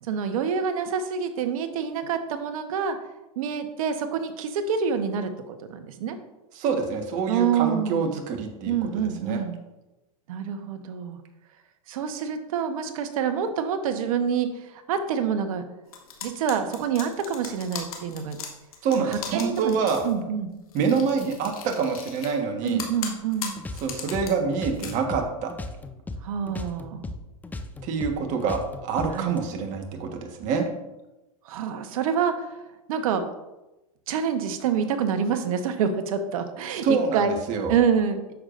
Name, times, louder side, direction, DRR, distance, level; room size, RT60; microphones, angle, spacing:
voice 1, 0.0-3.0 3.4-6.2 7.3-8.1 8.7-9.6 10.3-11.2 11.9-15.6 16.2-18.4 19.0-19.8 20.0-20.6 22.6-23.6 26.2-27.1 29.1-29.3 31.4-32.6 32.9-33.2 34.1-37.3 37.7-38.3, right 7 dB, 70° right, 8 dB, 1.1 m, -27 dB
voice 2, 6.6-9.4 18.8-20.0 20.7-22.8 23.8-25.5 27.8-30.7 36.7-37.7, right 5 dB, 45° right, 3 dB, 1.4 m, -26 dB
sound 1, 15.9-20.1 20.7-22.4 22.7-24.3 24.7-24.9, left 8 dB, 80° left, 1.7 m, -37 dB
sound 2, 23.6-26.2 26.5-29.4, left 2 dB, 10° left, 0.5 m, -36 dB
9.4 x 6.7 x 2.6 m, 0.99 s
hypercardioid pair, 115°, 18 cm